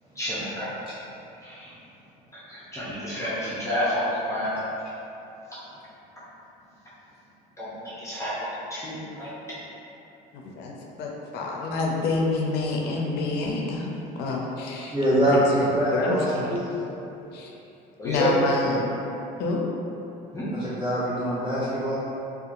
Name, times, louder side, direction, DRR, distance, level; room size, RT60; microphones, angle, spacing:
voice 1, 0.1-0.7 1.4-1.7 2.3-4.6 7.6-9.3 18.0-18.3 20.3-20.5, left 1 dB, 15° left, -10 dB, 0.5 m, -30 dB
voice 2, 10.4-14.9 15.2-16.6 17.3-17.5 18.0-18.8 19.4-19.6, left 3 dB, 70° left, -1 dB, 0.4 m, -28 dB
voice 3, 14.9-16.8 20.8-22.0, equal, 30° right, -13 dB, 1.4 m, -24 dB
2.7 x 2.2 x 2.5 m, 2.9 s
cardioid pair, 115°, 18 cm